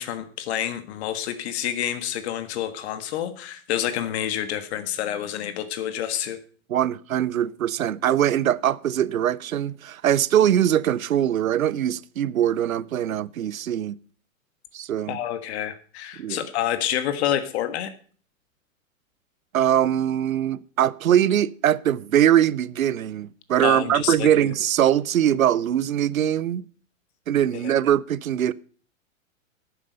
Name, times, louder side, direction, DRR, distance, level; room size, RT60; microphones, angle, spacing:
voice 1, 0.0-6.4 15.1-17.9 23.6-24.3 27.5-27.7, left 10 dB, 50° left, 1.6 m, -28 dB
voice 2, 6.7-14.0 14.7-15.2 16.2-16.4 19.5-26.6 27.3-28.5, right 10 dB, 85° right, 0.6 m, -22 dB
11.5 x 9.4 x 5.2 m
hypercardioid pair, 110°, 41 cm